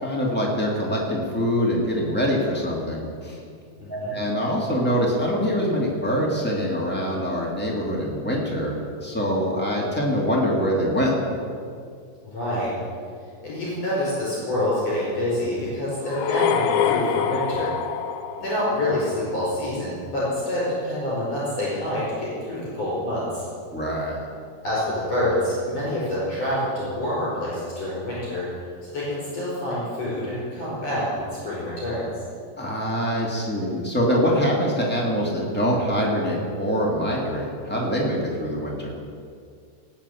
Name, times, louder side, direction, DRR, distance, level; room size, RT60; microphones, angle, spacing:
voice 1, 0.0-3.4 3.9-11.1 23.7-24.2 32.6-38.9, equal, 5° left, -4 dB, 0.8 m, -24 dB
voice 2, 3.8-4.2 12.2-12.7 13.4-17.7 18.4-23.5 24.6-28.5 28.8-32.0, left 1 dB, 35° left, -7 dB, 5.9 m, -27 dB
sound 1, 16.1-19.1, left 8 dB, 80° left, 3.0 m, -25 dB
18.5 x 7.2 x 8.5 m, 2.2 s
omnidirectional pair, 5.2 m